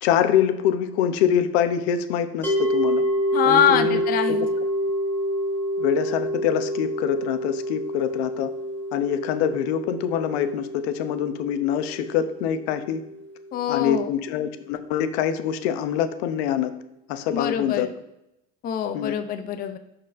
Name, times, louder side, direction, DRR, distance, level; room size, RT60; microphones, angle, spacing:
voice 1, 0.0-3.0 3.5-4.0 4.3-4.4 5.8-8.5 8.9-13.0 13.7-16.7 17.1-17.9 18.9-19.2, left 9 dB, 80° left, 10 dB, 0.7 m, -24 dB
sound 1, 2.4-13.6, equal, 5° left, 1.1 m, -27 dB
voice 2, 3.3-4.4 13.5-14.1 17.3-17.9 18.6-19.8, left 8 dB, 30° left, 8 dB, 0.5 m, -23 dB
11.0 x 4.2 x 2.5 m, 0.86 s
supercardioid pair, 125°, 32 cm